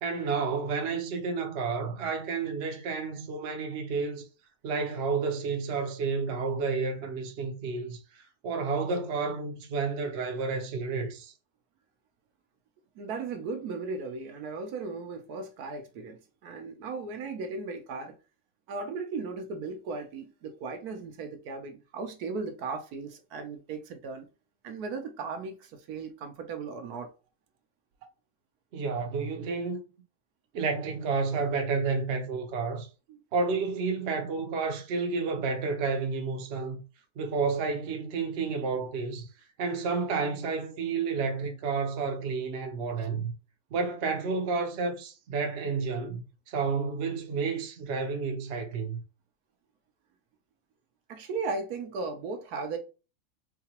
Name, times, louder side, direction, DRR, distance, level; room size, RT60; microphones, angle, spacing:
voice 1, 0.0-4.3 4.6-11.3 28.7-29.8 30.5-32.9 33.3-36.8 37.2-39.3 39.6-43.3 43.7-49.0, right 4 dB, 55° right, 0.8 m, -30 dB
voice 2, 13.0-18.1 18.7-24.3 24.6-27.1 33.1-33.2 51.1-52.8, right 4 dB, 75° right, 1.2 m, -36 dB
4.8 x 2.2 x 2.8 m
omnidirectional pair, 1.7 m